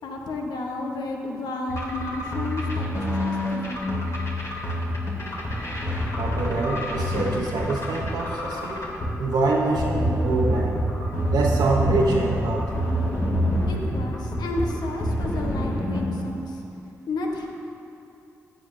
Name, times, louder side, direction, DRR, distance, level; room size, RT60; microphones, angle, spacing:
voice 1, 0.0-4.0 13.7-16.6 17.1-17.5, left 2 dB, 75° left, 1 dB, 1.0 m, -32 dB
sound 1, 1.7-16.0, equal, 45° left, 2.5 m, -27 dB
voice 2, 6.2-8.8 9.2-10.8 11.3-12.8, right 3 dB, 75° right, -4 dB, 1.0 m, -25 dB
14.0 x 8.7 x 2.7 m, 2.7 s
supercardioid pair, 40°, 7 cm